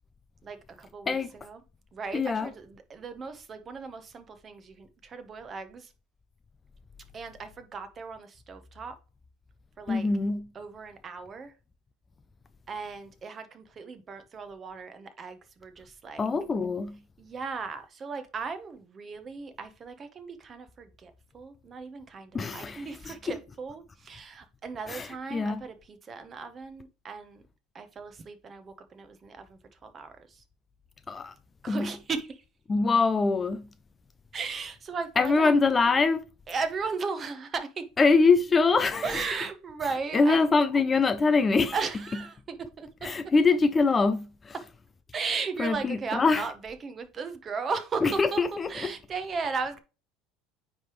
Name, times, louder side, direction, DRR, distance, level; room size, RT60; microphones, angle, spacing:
voice 1, 0.4-1.6 1.9-5.9 7.1-8.9 9.8-10.1 10.5-11.5 12.7-16.3 17.2-27.4 27.7-30.4 31.6-32.4 34.3-35.5 36.5-37.8 39.0-40.4 41.7-43.1 45.1-49.8, right 5 dB, 25° right, 0.9 m, -36 dB
voice 2, 2.1-2.5 9.9-10.5 16.2-17.0 22.3-23.1 24.9-25.6 31.1-31.3 31.7-31.9 32.7-33.7 35.2-36.2 38.0-39.0 40.1-41.8 43.0-44.5 45.6-46.4 48.0-48.9, left 4 dB, 20° left, 0.3 m, -24 dB
9.3 x 3.4 x 3.0 m
cardioid pair, 140°, 0 cm